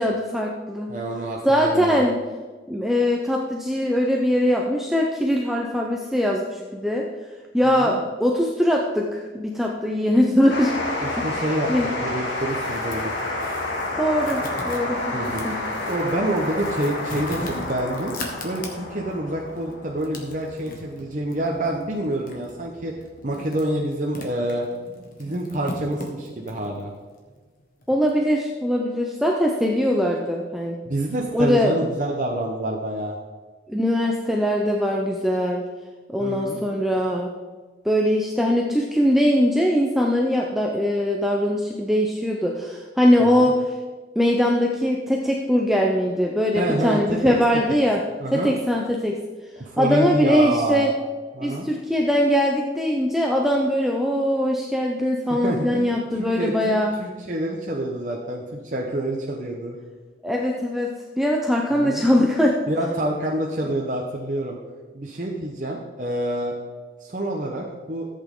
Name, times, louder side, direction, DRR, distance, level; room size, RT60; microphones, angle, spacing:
voice 1, 0.0-1.0 1.4-2.2 2.7-7.1 7.5-10.7 11.2-11.3 11.7-11.9 14.0-15.1 15.4-15.6 27.9-30.8 31.3-31.7 33.7-35.6 36.1-37.3 37.8-43.6 44.2-48.0 48.3-49.2 49.8-50.9 51.4-57.0 60.2-62.6, equal, ahead, -1 dB, 0.6 m, -21 dB
voice 2, 0.9-2.1 7.6-8.0 11.0-11.7 12.0-13.1 15.1-15.4 15.9-18.1 18.4-22.9 23.2-24.6 25.2-26.9 30.8-33.2 36.2-36.6 43.2-43.5 46.5-47.4 48.2-48.5 49.6-50.8 51.3-51.6 55.3-55.9 56.2-59.8 61.7-62.0 62.7-64.6 64.9-66.5 67.0-68.1, right 1 dB, 40° right, -2 dB, 1.0 m, -27 dB
sound 1, 10.5-23.4, left 2 dB, 75° left, 2.2 m, -30 dB
sound 2, 12.3-19.1 19.6-28.1, left 1 dB, 45° left, 1.6 m, -39 dB
14.0 x 8.4 x 3.8 m, 1.4 s
head